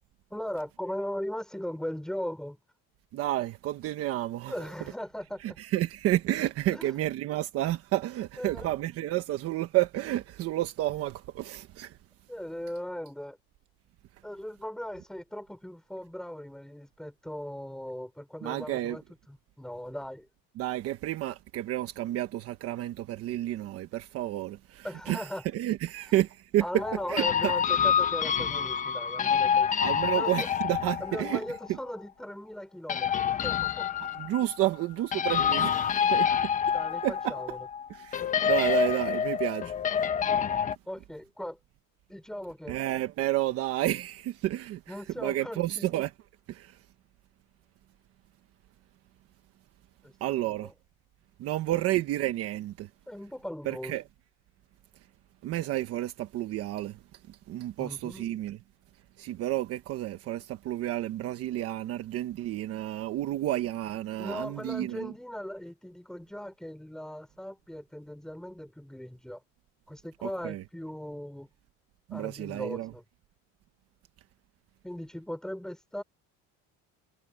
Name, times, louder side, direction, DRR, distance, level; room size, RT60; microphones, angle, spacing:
voice 1, 0.3-2.6 4.5-5.6 6.7-6.9 8.4-8.7 12.3-13.4 14.2-20.3 24.8-25.5 26.6-29.7 30.1-30.5 31.0-33.9 36.7-37.7 40.9-41.6 42.1-42.8 44.9-45.9 50.0-50.7 51.7-51.8 53.1-53.9 57.8-58.3 64.2-69.4 69.9-71.5 72.1-73.0 74.8-76.0, equal, ahead, 5.6 m, -38 dB
voice 2, 3.1-4.7 5.4-12.0 18.4-19.0 20.6-26.6 27.1-27.5 29.8-31.4 31.7-31.8 34.2-36.5 37.0-37.3 37.9-39.7 40.0-40.1 42.7-46.1 46.5-46.8 50.2-50.7 51.4-52.9 53.6-54.0 55.4-57.0 57.3-58.6 59.2-65.1 70.2-70.6 72.1-72.9, right 15 dB, 50° right, 1.2 m, -31 dB
sound 1, 26.8-31.7 32.9-34.6 35.1-37.9 38.1-40.8, left 8 dB, 25° left, 1.1 m, -27 dB
cardioid pair, 165°, 31 cm